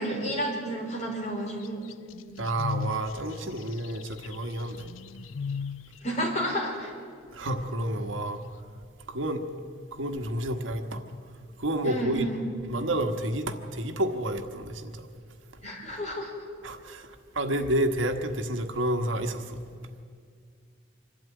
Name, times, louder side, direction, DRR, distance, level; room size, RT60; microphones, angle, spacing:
voice 1, 0.0-1.8 6.0-6.9 11.8-12.4 15.6-16.3 17.5-17.6, right 1 dB, 35° left, -1 dB, 4.5 m, -31 dB
sound 1, 1.6-5.9, left 5 dB, 80° left, 0.5 m, -36 dB
voice 2, 2.4-4.9 7.3-8.4 9.1-9.4 9.9-11.0 11.6-12.3 12.7-15.1 16.6-19.6, right 1 dB, 70° right, 7 dB, 1.4 m, -30 dB
26.0 x 12.5 x 9.3 m, 2.2 s
head